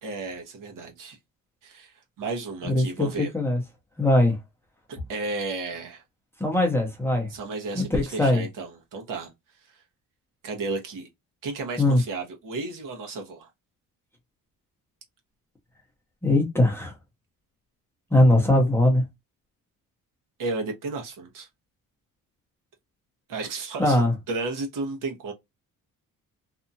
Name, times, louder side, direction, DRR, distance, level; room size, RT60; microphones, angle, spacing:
voice 1, 0.0-1.2 1.6-3.3 5.1-6.0 7.3-9.3 10.4-11.1 11.4-13.5 20.4-21.5 23.3-25.3, right 3 dB, 65° right, 1.0 m, -33 dB
voice 2, 2.6-3.6 4.0-4.4 6.4-7.3 7.8-8.4 11.8-12.0 16.2-16.9 18.1-19.0 23.8-24.1, left 1 dB, 5° left, 0.6 m, -21 dB
2.8 x 2.3 x 2.6 m
cardioid pair, 180°, 35 cm